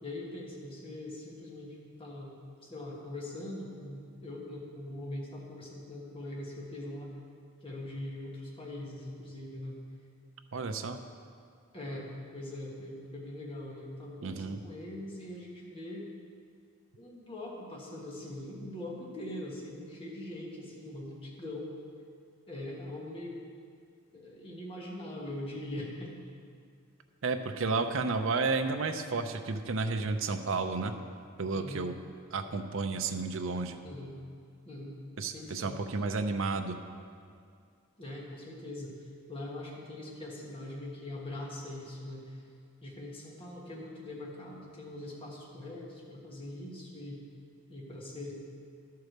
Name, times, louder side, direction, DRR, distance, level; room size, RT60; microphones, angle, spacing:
voice 1, 0.0-2.4 2.6-7.1 7.6-9.8 11.7-16.1 17.0-21.7 22.5-23.4 24.1-26.2 31.5-31.9 33.8-34.2 34.6-35.8 38.0-38.9 39.3-42.4 42.8-47.2 47.7-48.3, left 1 dB, 25° left, -3 dB, 1.4 m, -42 dB
voice 2, 10.5-11.0 14.2-14.6 27.2-30.9 31.4-31.9 32.3-33.8 35.2-36.8, right 4 dB, 60° right, 7 dB, 0.6 m, -32 dB
12.0 x 4.7 x 6.6 m, 2.3 s
head